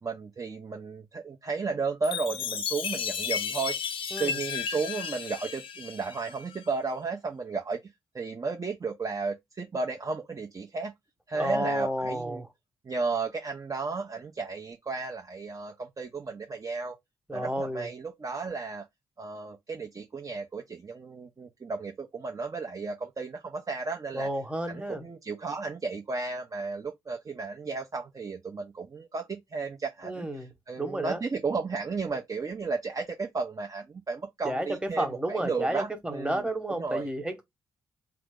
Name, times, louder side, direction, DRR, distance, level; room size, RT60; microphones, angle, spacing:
voice 1, 0.0-3.8 4.2-10.9 11.3-12.4 12.8-17.0 17.3-18.9 19.2-24.3 24.7-36.5 36.8-37.1, right 4 dB, 35° right, 0.8 m, -34 dB
Chime, 2.0-6.6, left 7 dB, 65° left, 0.6 m, -33 dB
voice 2, 11.3-12.5 17.3-17.9 24.1-25.0 30.0-30.5 30.8-31.2 34.4-37.4, right 1 dB, 10° right, 1.2 m, -31 dB
2.9 x 2.0 x 3.6 m
hypercardioid pair, 45°, 10 cm